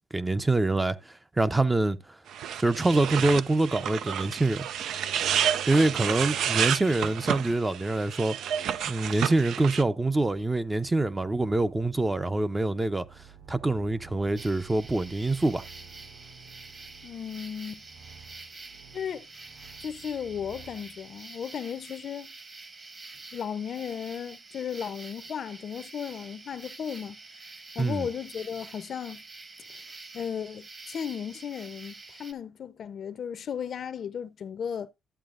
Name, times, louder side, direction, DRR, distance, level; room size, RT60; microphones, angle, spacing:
voice 1, 0.1-2.0 2.6-4.7 5.7-8.4 8.8-13.1 13.5-15.6 27.8-28.1, right 2 dB, 15° right, 0.6 m, -25 dB
sound 1, 2.3-9.8, right 9 dB, 75° right, 0.4 m, -30 dB
sound 2, 10.1-21.2, right 6 dB, 60° right, 6.9 m, -52 dB
sound 3, 14.4-32.3, right 3 dB, 40° right, 1.7 m, -47 dB
voice 2, 17.0-17.8 18.9-19.3 19.8-22.3 23.3-27.5 27.8-29.2 30.1-34.9, left 8 dB, 55° left, 0.6 m, -35 dB
12.5 x 7.8 x 2.5 m
cardioid pair, 90°, 0 cm